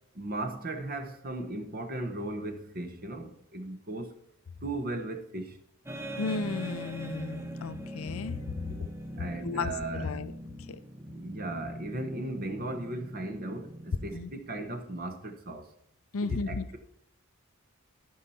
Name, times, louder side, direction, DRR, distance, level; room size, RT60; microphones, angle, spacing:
voice 1, 0.1-4.2 4.6-5.6 8.7-8.8 9.2-10.2 11.1-15.7 16.2-16.8, right 2 dB, 40° right, 6 dB, 0.9 m, -37 dB
sound 1, 5.9-14.8, right 1 dB, 10° right, 0.6 m, -41 dB
voice 2, 6.2-8.4 9.4-10.3 14.1-14.3 16.1-16.7, left 4 dB, 70° left, 14 dB, 0.5 m, -34 dB
13.5 x 5.6 x 4.2 m, 0.73 s
head